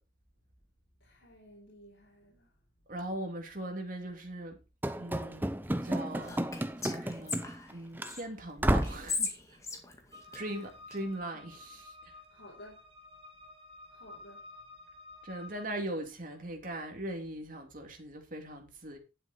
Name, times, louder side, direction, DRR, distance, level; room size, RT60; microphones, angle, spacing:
voice 1, 1.0-2.5 10.2-10.4 10.9-11.4 12.3-12.9 13.9-14.5, equal, 70° left, 4.0 m, -55 dB
voice 2, 2.9-4.6 4.9-5.5 5.8-6.4 6.8-7.4 7.7-9.4 10.3-12.1 15.2-19.0, right 1 dB, 45° right, 2.9 m, -40 dB
Run / Slam, 4.8-7.7 8.0-8.1 8.6-9.1, right 1 dB, 10° right, 0.7 m, -31 dB
Whispering, 6.2-8.2 8.8-11.0, left 4 dB, 15° left, 2.0 m, -38 dB
sound 1, 10.1-15.7, left 2 dB, 30° right, 4.5 m, -52 dB
11.5 x 8.2 x 4.4 m
head